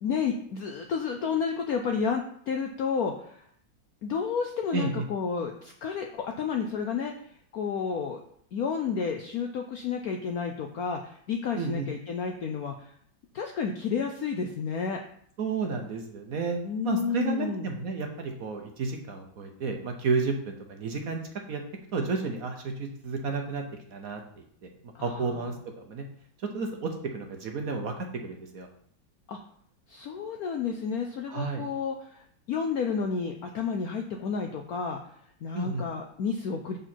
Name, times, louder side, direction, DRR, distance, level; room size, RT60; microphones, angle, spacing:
voice 1, 0.0-3.4 4.0-7.1 7.5-8.2 8.5-12.9 13.3-15.0 16.6-17.7 24.9-25.5 29.3-29.4 29.9-35.0 35.4-36.8, left 6 dB, 65° left, 3 dB, 0.9 m, -31 dB
voice 2, 4.7-5.0 11.5-11.9 15.4-16.6 16.8-21.2 21.5-21.6 21.9-23.6 23.9-24.7 25.0-25.5 25.9-26.0 26.4-28.7 31.3-31.6 35.5-35.8, right 4 dB, 55° right, 3 dB, 1.1 m, -31 dB
6.8 x 6.2 x 4.4 m, 0.64 s
omnidirectional pair, 2.1 m